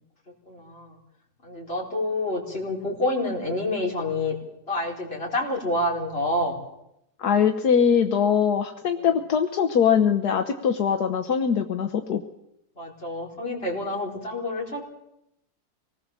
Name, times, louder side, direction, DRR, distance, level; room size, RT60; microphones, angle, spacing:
voice 1, 0.5-1.0 1.4-4.4 4.7-6.6 9.0-9.1 12.7-14.8, left 1 dB, 35° left, -2 dB, 5.1 m, -28 dB
voice 2, 7.2-12.2, left 7 dB, 75° left, 6 dB, 1.6 m, -22 dB
25.5 x 19.5 x 7.2 m, 0.82 s
omnidirectional pair, 1.7 m